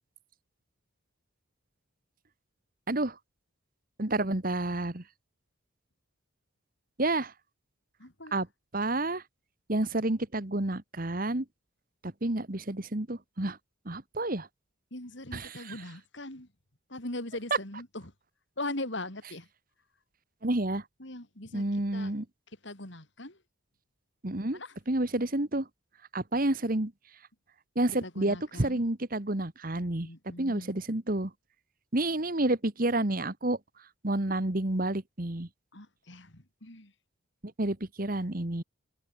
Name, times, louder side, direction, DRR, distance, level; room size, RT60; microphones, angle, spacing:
voice 1, 4.0-5.0 7.0-7.3 8.3-8.5 8.7-9.2 9.7-11.4 12.0-13.6 13.8-14.5 15.3-15.5 20.4-20.8 21.5-22.2 24.2-24.6 24.9-25.7 26.1-26.9 27.7-30.1 30.4-31.3 31.9-33.6 34.0-35.5 37.6-38.6, right 1 dB, 40° right, 1.6 m, -29 dB
voice 2, 8.0-8.4 14.9-16.5 16.9-18.1 18.6-19.5 21.0-22.1 22.5-23.4 24.5-24.8 28.0-28.9 30.0-30.7 35.7-36.9, left 2 dB, 60° left, 4.1 m, -40 dB
head